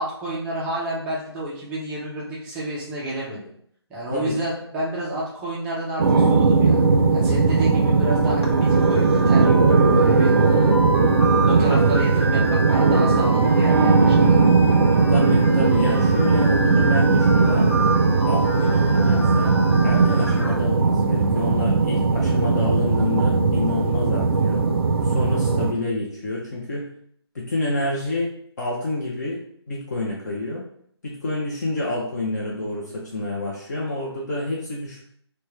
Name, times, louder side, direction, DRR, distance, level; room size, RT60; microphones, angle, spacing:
voice 1, 0.0-3.5 3.9-6.9 7.1-10.7 11.5-14.4, right 1 dB, 5° right, -6 dB, 0.4 m, -30 dB
sound 1, 6.0-25.7, right 4 dB, 60° right, 0.5 m, -18 dB
sound 2, 8.4-20.6, right 2 dB, 65° left, 1.0 m, -31 dB
voice 2, 15.1-17.7 18.2-19.5 19.8-24.6 25.0-26.8 27.3-28.3 28.6-29.4 29.7-30.6 31.0-35.0, left 2 dB, 40° left, -3 dB, 0.7 m, -28 dB
4.2 x 2.2 x 3.2 m, 0.65 s
figure-of-eight pair, 155°, 14 cm